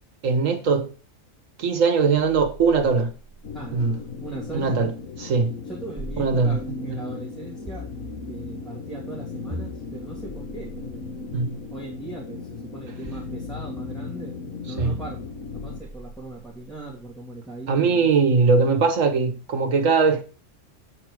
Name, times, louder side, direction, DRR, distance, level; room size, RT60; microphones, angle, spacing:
voice 1, 0.2-0.9 1.6-3.1 3.7-4.0 4.5-4.9 5.2-5.6 6.2-7.0 11.3-11.5 14.8-14.9 17.7-20.2, right 4 dB, 85° right, 1.7 m, -21 dB
sound 1, 3.1-4.8 5.9-7.0 7.7-8.8 9.5-11.8 13.0-14.1 14.8-16.9, equal, 15° right, 1.2 m, -41 dB
sound 2, 3.4-15.8, left 4 dB, 90° left, 1.5 m, -37 dB
voice 2, 3.5-4.9 5.7-7.9 8.3-11.2 11.7-15.2 15.5-18.1, right 3 dB, ahead, 2.5 m, -39 dB
8.5 x 4.9 x 6.3 m
omnidirectional pair, 1.3 m